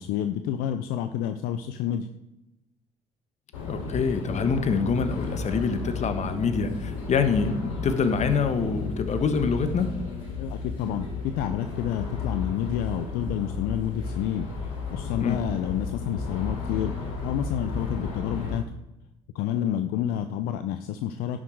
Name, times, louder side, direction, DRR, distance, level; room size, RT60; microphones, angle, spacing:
voice 1, 0.0-2.1 10.4-18.6 19.3-21.4, left 10 dB, 70° left, 9 dB, 0.6 m, -29 dB
sound 1, 3.5-18.5, left 4 dB, 85° left, 3.3 m, -33 dB
voice 2, 3.7-9.9 15.2-15.4, left 5 dB, 45° left, 9 dB, 1.3 m, -25 dB
11.0 x 6.5 x 4.6 m, 0.92 s
hypercardioid pair, 55°, 16 cm